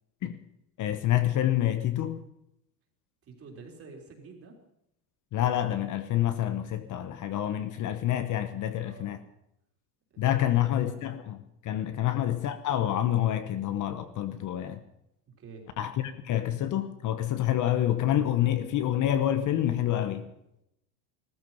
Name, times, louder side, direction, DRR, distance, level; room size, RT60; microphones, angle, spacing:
voice 1, 0.8-2.2 5.3-9.2 10.2-14.8 15.8-20.3, left 12 dB, 40° left, 1.1 m, -27 dB
voice 2, 3.2-4.6 8.8-9.1 10.1-11.1 12.0-12.1 15.3-15.7, right 4 dB, 30° right, 3.7 m, -49 dB
16.5 x 14.0 x 5.7 m
cardioid pair, 160°, 45 cm